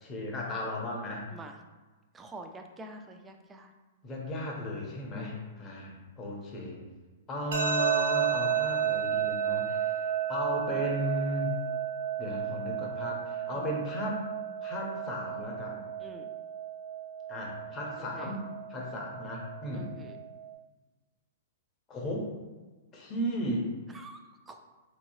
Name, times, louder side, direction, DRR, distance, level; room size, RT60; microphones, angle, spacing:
voice 1, 0.0-1.3 4.0-6.8 7.3-11.6 12.2-14.2 14.6-15.8 17.3-18.4 18.7-19.9 21.9-22.3 22.9-23.7, left 1 dB, 20° left, -2 dB, 0.8 m, -35 dB
voice 2, 2.1-3.7 5.1-5.8 13.5-13.7 16.0-16.3 18.0-18.4 19.7-20.2 23.9-24.2 24.5-24.6, right 1 dB, 10° right, 4 dB, 0.3 m, -47 dB
sound 1, 7.5-20.5, right 9 dB, 70° right, 0.6 m, -33 dB
3.5 x 3.0 x 2.7 m, 1.3 s
hypercardioid pair, 145°, 0 cm